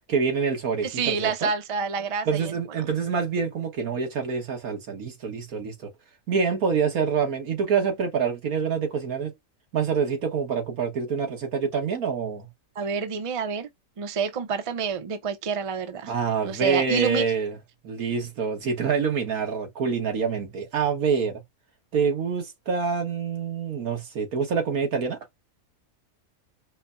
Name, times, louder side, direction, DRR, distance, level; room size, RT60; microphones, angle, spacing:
voice 1, 0.1-1.5 2.2-5.7 6.3-9.3 9.7-12.5 16.1-17.6 17.8-21.4 21.9-25.2, right 6 dB, 90° right, 1.8 m, -26 dB
voice 2, 0.8-2.5 12.8-13.7 14.0-16.1 16.4-17.2, right 6 dB, 40° right, 0.5 m, -28 dB
5.0 x 2.1 x 2.5 m
omnidirectional pair, 1.5 m